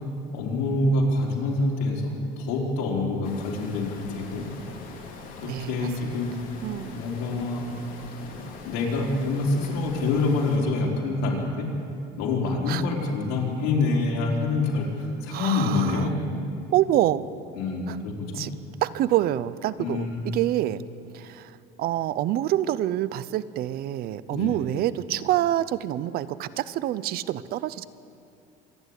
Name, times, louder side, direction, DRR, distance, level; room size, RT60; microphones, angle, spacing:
voice 1, 0.3-4.4 5.4-6.3 6.9-7.7 8.1-11.7 12.2-16.1 17.5-18.4 19.8-20.2 24.3-24.6, left 3 dB, 85° left, -1 dB, 4.7 m, -26 dB
sound 1, 3.2-10.6, left 4 dB, 45° left, 3.6 m, -42 dB
voice 2, 5.4-6.2 6.6-7.0 12.7-12.8 15.3-16.1 16.7-17.2 17.9-18.0 18.4-18.5 18.8-20.8 21.1-27.9, right 13 dB, 55° right, 17 dB, 0.7 m, -27 dB
26.0 x 11.0 x 9.9 m, 2.6 s
cardioid pair, 140°, 19 cm